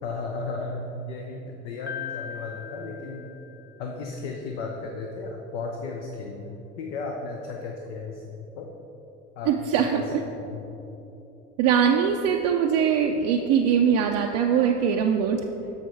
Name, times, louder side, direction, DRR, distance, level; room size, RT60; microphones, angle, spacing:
voice 1, 0.0-3.3 3.8-8.7 9.4-9.5 9.8-10.0 10.3-10.7, left 3 dB, 65° left, 1 dB, 0.9 m, -35 dB
Piano, 1.9-4.0, left 8 dB, 25° left, 0.5 m, -39 dB
voice 2, 9.5-10.2 11.6-15.5, right 7 dB, 55° right, 2 dB, 0.6 m, -22 dB
6.7 x 6.4 x 4.8 m, 3.0 s
hypercardioid pair, 70°, 38 cm